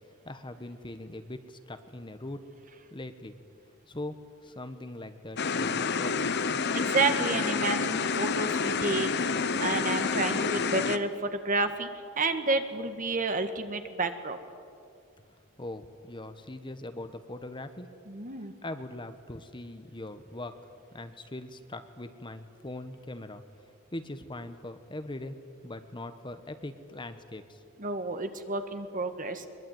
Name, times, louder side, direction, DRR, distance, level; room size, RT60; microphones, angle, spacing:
voice 1, 0.2-2.4 2.9-3.3 3.9-6.3 15.6-17.9 18.6-20.6 20.9-23.4 23.9-25.4 25.6-27.6, left 1 dB, 25° left, 9 dB, 1.1 m, -41 dB
sound 1, 5.4-11.0, left 5 dB, 55° left, 1.0 m, -28 dB
voice 2, 6.7-9.1 9.6-11.9 12.2-14.4 18.1-18.5 27.8-29.4, right 3 dB, 40° right, 8 dB, 1.8 m, -30 dB
22.5 x 22.0 x 9.4 m, 2.4 s
head